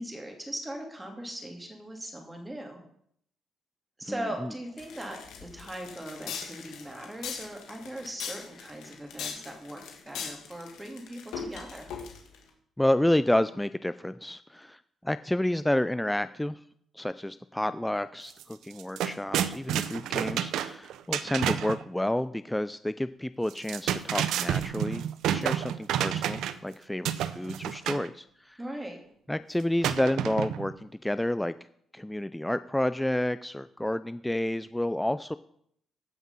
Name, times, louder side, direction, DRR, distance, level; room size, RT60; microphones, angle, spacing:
voice 1, 0.0-2.8 4.0-11.9 28.6-29.0, right 1 dB, 15° right, 2 dB, 2.8 m, -39 dB
voice 2, 4.1-4.5 12.8-16.6 16.9-25.1 25.3-28.6 29.3-31.5 31.9-35.3, left 1 dB, 5° left, 13 dB, 0.3 m, -30 dB
sound 1, 4.8-12.4, left 6 dB, 85° left, 2.0 m, -40 dB
sound 2, 18.3-18.4 18.7-21.8 23.5-26.7 27.0-28.1 29.8-30.7, right 10 dB, 80° right, 0.6 m, -29 dB
14.5 x 5.9 x 5.6 m, 0.69 s
cardioid pair, 90°, 0 cm